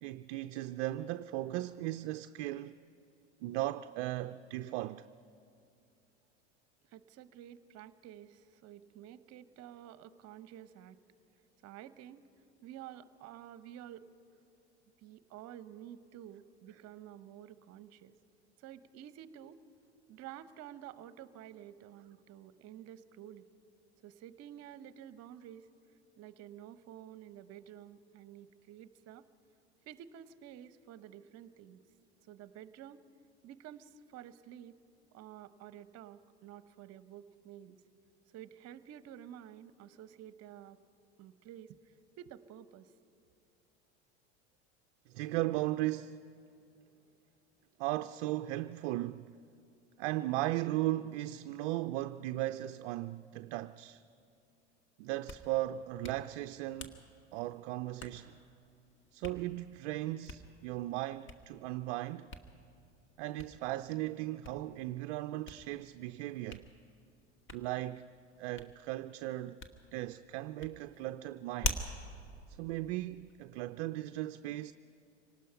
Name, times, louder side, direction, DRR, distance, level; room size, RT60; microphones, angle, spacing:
voice 1, 0.0-2.8 3.4-5.1 45.1-46.3 47.8-49.4 50.0-54.0 55.0-57.0 57.3-58.4 59.1-62.3 63.2-66.7 67.5-68.1 68.4-69.6 69.9-71.8 72.6-74.7, right 16 dB, 60° right, 0.5 m, -37 dB
voice 2, 6.9-11.0 11.6-12.2 12.6-14.1 15.0-18.1 18.6-19.6 20.1-23.4 24.0-25.7 26.2-29.2 29.9-31.8 32.3-33.0 33.4-34.8 35.1-37.8 38.3-40.8 41.2-42.9, right 11 dB, 45° right, 0.9 m, -51 dB
Hands, 55.0-73.6, left 2 dB, 35° left, 1.7 m, -47 dB
25.5 x 18.5 x 5.8 m
hypercardioid pair, 80°, 35 cm